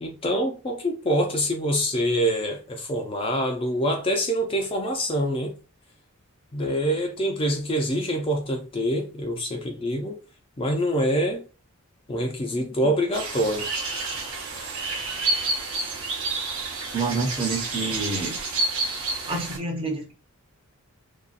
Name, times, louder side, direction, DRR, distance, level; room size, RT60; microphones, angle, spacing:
voice 1, 0.0-5.6 6.5-10.2 10.6-11.4 12.1-13.7, equal, 25° left, 0.4 m, -25 dB
sound 1, 13.1-19.6, right 3 dB, 60° right, 0.7 m, -29 dB
voice 2, 16.9-18.4 19.3-20.1, right 3 dB, 25° right, 0.7 m, -28 dB
2.6 x 2.3 x 2.5 m
head